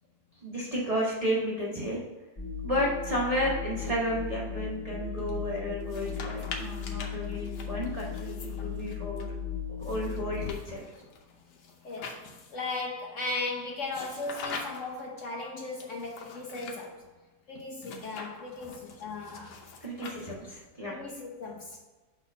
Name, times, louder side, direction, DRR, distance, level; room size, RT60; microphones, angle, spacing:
voice 1, 0.4-2.0 2.6-9.4 9.8-10.8 19.8-21.0, equal, 25° right, -6 dB, 1.0 m, -32 dB
sound 1, 2.4-10.5, left 7 dB, 25° left, 1.0 m, -36 dB
sound 2, 5.8-9.2 9.8-12.7 13.9-15.0 15.8-16.9 17.8-20.6, left 4 dB, 80° left, 1.4 m, -44 dB
voice 2, 11.8-12.2 12.5-17.0 17.5-19.6 20.1-20.2 20.8-21.8, left 3 dB, 55° left, 0 dB, 1.0 m, -37 dB
6.4 x 3.4 x 5.9 m, 1.2 s
omnidirectional pair, 1.8 m